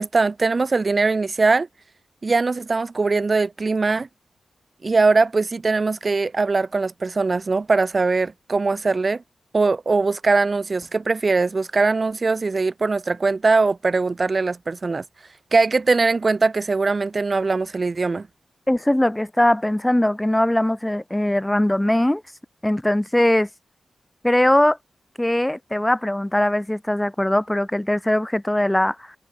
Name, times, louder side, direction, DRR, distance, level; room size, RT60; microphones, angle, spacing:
voice 1, 0.0-1.7 2.2-4.1 4.8-9.2 9.5-15.0 15.5-18.3, right 3 dB, 45° right, 1.6 m, -21 dB
voice 2, 18.7-22.2 22.6-23.5 24.2-24.8 25.2-29.1, left 1 dB, 10° left, 1.1 m, -20 dB
cardioid pair, 65°, 0 cm